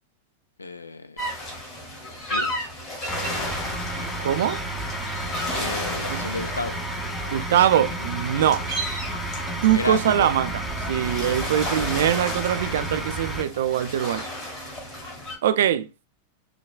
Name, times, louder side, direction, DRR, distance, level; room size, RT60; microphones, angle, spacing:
voice 1, 0.6-1.3 2.3-2.6 5.5-6.8 7.5-7.9 9.7-10.3 11.1-11.3, left 3 dB, 80° left, 0.4 m, -33 dB
sound 1, 1.2-15.3, equal, 35° left, 1.9 m, -34 dB
sound 2, 3.1-13.4, right 1 dB, 10° left, 0.7 m, -31 dB
voice 2, 4.2-4.6 6.1-6.3 7.3-8.6 9.6-10.5 10.9-14.2 15.4-15.9, right 10 dB, 60° right, 0.4 m, -22 dB
5.8 x 2.2 x 2.2 m
figure-of-eight pair, 90°, 0 cm